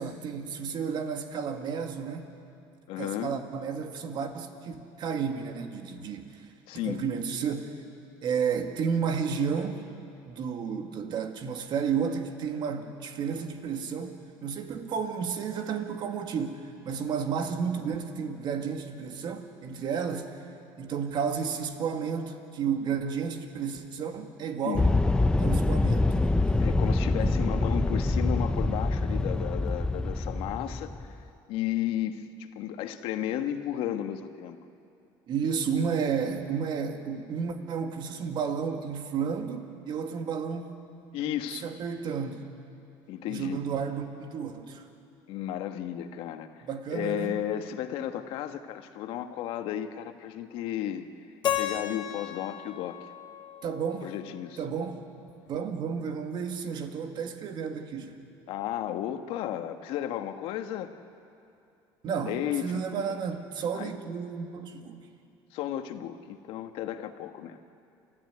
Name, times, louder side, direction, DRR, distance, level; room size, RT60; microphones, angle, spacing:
voice 1, 0.0-2.3 3.0-6.4 6.9-7.8 8.2-9.8 10.3-20.4 20.8-24.9 25.4-26.4 27.2-27.3 35.3-40.7 41.6-42.5 43.3-44.8 46.7-47.4 53.6-54.1 54.6-55.0 55.5-58.2 62.0-65.1, right 6 dB, 50° right, 5 dB, 2.2 m, -32 dB
voice 2, 2.9-3.3 6.7-7.0 24.6-24.8 26.6-31.2 31.5-34.6 41.1-41.7 43.1-43.6 45.3-51.1 51.6-53.0 54.0-54.6 58.5-60.9 62.2-63.2 63.7-63.9 65.5-67.6, left 11 dB, 70° left, 7 dB, 1.5 m, -34 dB
sound 1, 24.7-31.2, left 2 dB, 10° left, 0.7 m, -25 dB
Keyboard (musical), 51.4-54.4, left 10 dB, 45° left, 1.7 m, -34 dB
29.0 x 13.5 x 9.6 m, 2.6 s
cardioid pair, 115°, 10 cm